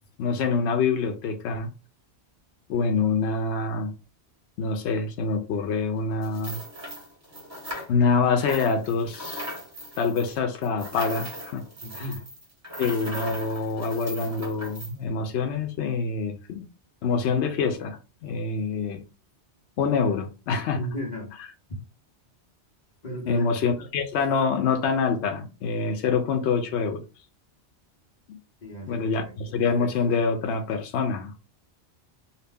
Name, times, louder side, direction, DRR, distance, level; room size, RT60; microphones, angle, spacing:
voice 1, 0.2-1.7 2.7-3.9 4.6-6.6 7.9-9.5 10.0-11.7 11.9-12.0 12.8-16.7 17.0-19.0 19.8-20.8 23.3-27.0 28.3-28.4 28.9-31.3, left 5 dB, 75° left, 0.9 m, -26 dB
sound 1, 6.2-8.2 8.4-14.9, equal, 15° right, 0.9 m, -38 dB
voice 2, 11.8-12.2 20.7-21.3 21.7-21.8 23.0-23.5 23.8-23.9 28.6-29.9, equal, 40° left, 1.2 m, -35 dB
2.8 x 2.1 x 3.4 m
omnidirectional pair, 1.1 m